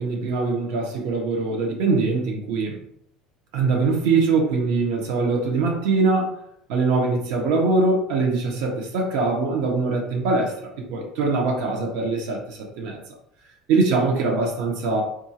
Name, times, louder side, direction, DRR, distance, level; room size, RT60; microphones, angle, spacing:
voice 1, 0.0-2.8 3.5-6.3 6.7-10.5 10.9-13.0 13.7-15.0, right 3 dB, 70° right, 0 dB, 1.0 m, -22 dB
4.3 x 2.4 x 2.8 m, 0.73 s
cardioid pair, 170°, 0 cm